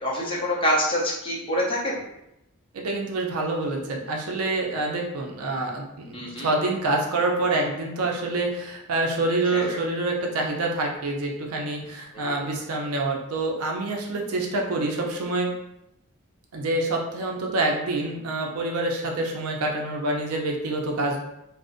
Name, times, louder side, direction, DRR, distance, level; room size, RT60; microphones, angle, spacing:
voice 1, 0.0-2.0 6.1-6.5 9.5-9.6 12.1-12.4, equal, 25° left, -5 dB, 0.6 m, -26 dB
voice 2, 2.7-15.5 16.5-21.2, right 2 dB, 85° right, 0 dB, 0.5 m, -27 dB
2.5 x 2.0 x 2.5 m, 0.84 s
head